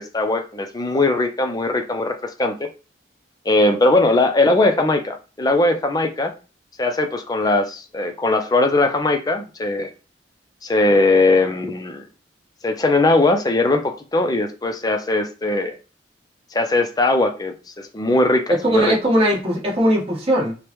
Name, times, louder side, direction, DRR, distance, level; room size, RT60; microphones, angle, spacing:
voice 1, 0.0-2.7 3.5-6.3 6.8-9.9 10.6-12.0 12.6-15.8 16.5-19.0, left 2 dB, 20° left, 5 dB, 0.5 m, -19 dB
voice 2, 18.5-20.5, equal, 35° right, -4 dB, 1.5 m, -19 dB
5.1 x 2.2 x 3.0 m, 0.33 s
head